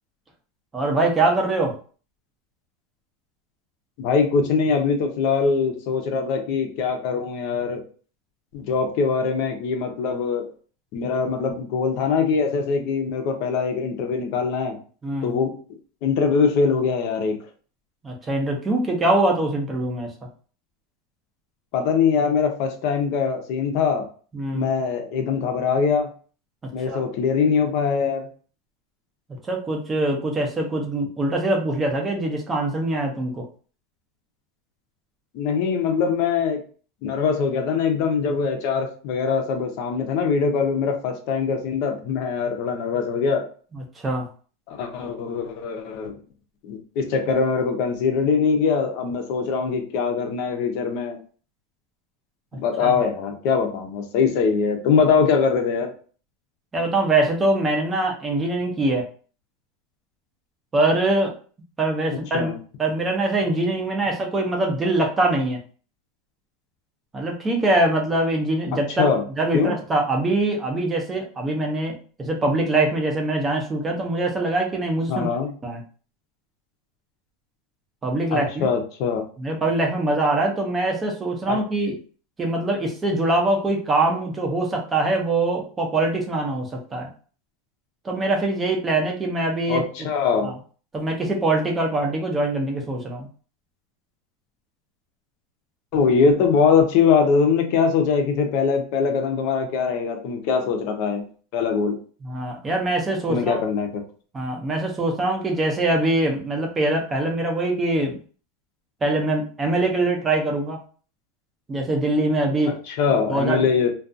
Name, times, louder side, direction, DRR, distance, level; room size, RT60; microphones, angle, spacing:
voice 1, 0.7-1.7 15.0-15.3 18.0-20.1 24.3-24.7 26.9-27.0 29.4-33.4 43.7-44.3 52.8-52.9 56.7-59.0 60.7-61.3 61.8-62.5 62.8-65.6 67.1-69.1 69.4-75.3 75.6-75.8 78.0-78.7 79.4-82.0 82.4-87.1 88.0-89.8 90.4-90.5 90.9-93.3 102.2-103.6 104.3-108.2 109.0-110.8 111.7-112.8 113.3-113.6, right 2 dB, 15° right, 1 dB, 0.5 m, -23 dB
voice 2, 4.0-7.8 8.5-10.5 10.9-14.8 15.2-15.5 16.0-17.3 21.7-24.0 24.5-26.1 26.7-28.3 35.3-36.6 37.0-43.5 44.7-46.1 46.6-51.2 52.5-55.9 62.3-62.6 68.7-69.2 69.5-69.7 75.1-75.5 78.3-79.2 81.5-81.6 89.7-90.5 95.9-101.2 101.5-102.0 103.3-104.0 112.9-113.9, left 5 dB, 45° left, 4 dB, 0.6 m, -22 dB
2.4 x 2.3 x 2.5 m, 0.40 s
supercardioid pair, 170°, 0 cm